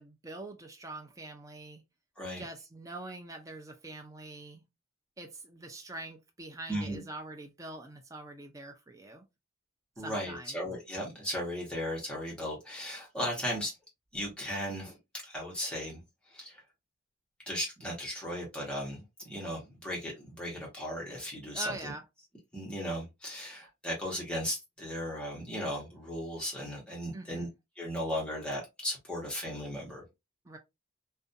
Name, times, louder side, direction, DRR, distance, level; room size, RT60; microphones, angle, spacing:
voice 1, 0.0-1.8 2.4-4.6 5.2-9.2 10.0-10.6 21.5-22.0 27.1-27.5 30.4-30.6, right 2 dB, 15° right, 0.4 m, -44 dB
voice 2, 6.7-7.0 10.0-13.7 14.1-15.0 15.2-16.6 17.5-21.9 22.5-27.5 27.8-30.0, equal, 5° left, 1.0 m, -36 dB
2.5 x 2.2 x 2.5 m
head